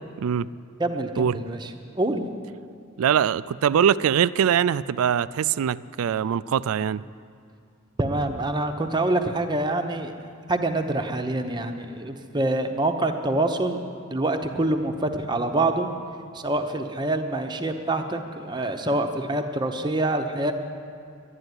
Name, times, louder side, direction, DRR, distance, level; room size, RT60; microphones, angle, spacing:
voice 1, 0.2-0.5 1.2-1.4 3.0-7.0, right 8 dB, 75° right, 18 dB, 0.3 m, -22 dB
voice 2, 0.8-1.7 1.9-2.2 8.0-10.1 10.5-15.9 16.3-20.5, right 2 dB, 20° right, 6 dB, 0.8 m, -26 dB
12.0 x 10.5 x 9.7 m, 2.3 s
head